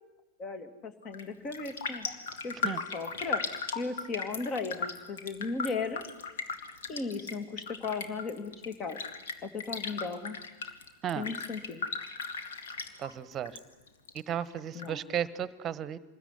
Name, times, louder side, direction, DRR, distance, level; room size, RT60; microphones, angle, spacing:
voice 1, 0.4-2.1 2.4-3.4 3.7-6.0 6.9-9.0 9.4-10.4 11.2-11.8 14.7-15.0, left 4 dB, 30° left, 10 dB, 2.5 m, -36 dB
Raindrop, 1.0-1.3 1.5-13.6 13.9-14.9 15.3-15.4, left 4 dB, 60° left, 2.3 m, -37 dB
voice 2, 13.0-13.5 14.3-16.0, right 9 dB, 30° right, 18 dB, 1.2 m, -34 dB
26.5 x 21.0 x 9.9 m, 1.1 s
figure-of-eight pair, 90°, 0 cm